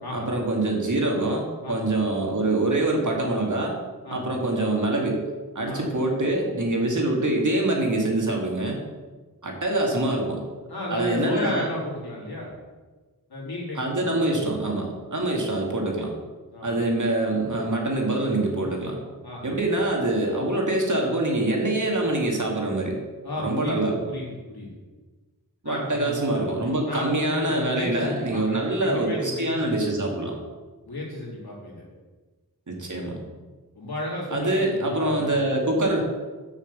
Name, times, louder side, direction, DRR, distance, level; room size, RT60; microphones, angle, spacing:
voice 1, 0.1-3.7 4.1-5.2 5.5-8.8 9.4-10.4 10.9-11.7 13.8-16.1 16.6-19.0 19.4-23.0 23.4-24.0 25.6-30.3 32.7-33.2 34.3-36.0, right 2 dB, 55° right, 0 dB, 2.2 m, -25 dB
voice 2, 10.7-12.5 13.3-14.5 16.5-16.8 19.2-19.6 23.2-24.7 25.6-26.5 26.9-29.8 30.9-31.8 33.7-35.4, left 1 dB, 85° left, -4 dB, 3.2 m, -33 dB
7.2 x 6.4 x 6.8 m, 1.3 s
wide cardioid pair, 50°, 37 cm